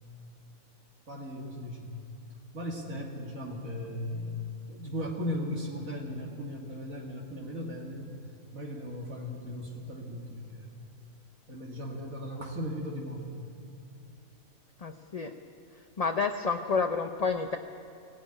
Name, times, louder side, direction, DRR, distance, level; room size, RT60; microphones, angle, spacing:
voice 1, 1.1-1.9 2.5-10.7 11.5-13.3, left 1 dB, 70° right, -1 dB, 2.3 m, -37 dB
voice 2, 14.8-15.3 16.0-17.6, left 4 dB, 40° left, 5 dB, 0.5 m, -29 dB
17.0 x 17.0 x 9.8 m, 2.5 s
omnidirectional pair, 1.5 m